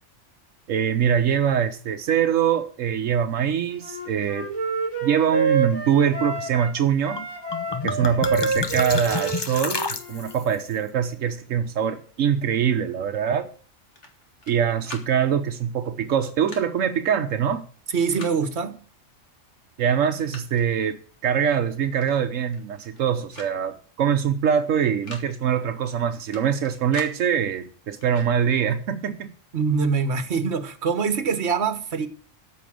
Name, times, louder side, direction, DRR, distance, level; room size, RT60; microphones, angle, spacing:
voice 1, 0.7-4.5 5.0-7.2 7.8-13.5 14.5-17.7 19.8-29.3, right 8 dB, 85° right, 1.2 m, -23 dB
Wind instrument woodwind instrument, 3.8-6.7 7.0-10.4, right 4 dB, 20° right, 3.3 m, -28 dB
sound 1, 7.2-7.3 7.5-10.5, left 4 dB, 30° left, 0.5 m, -30 dB
sound 2, 14.0-14.6 14.8-15.1 16.2-16.7 17.9-18.4 19.5-19.6 20.0-20.6 22.0-22.2 22.4-23.0 23.3-23.5 23.8-23.9 24.9-25.3 26.3-27.2 28.0-28.3, left 2 dB, 65° left, 2.4 m, -42 dB
voice 2, 17.9-18.8 29.5-32.1, right 5 dB, 60° right, 1.5 m, -24 dB
13.5 x 5.2 x 7.6 m
omnidirectional pair, 1.3 m